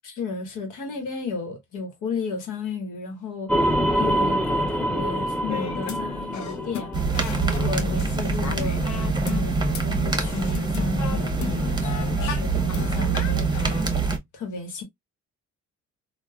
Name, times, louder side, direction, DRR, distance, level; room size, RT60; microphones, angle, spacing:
voice 1, 0.0-6.9 7.3-13.7 14.3-14.8, left 3 dB, 85° left, 1.2 m, -33 dB
sound 1, 3.5-7.9, equal, 5° left, 0.5 m, -25 dB
sound 2, 5.5-9.8 10.1-13.8, left 9 dB, 70° left, 0.6 m, -36 dB
sound 3, 6.9-14.2, right 4 dB, 15° right, 0.9 m, -25 dB
3.3 x 2.3 x 2.2 m
cardioid pair, 90°, 30 cm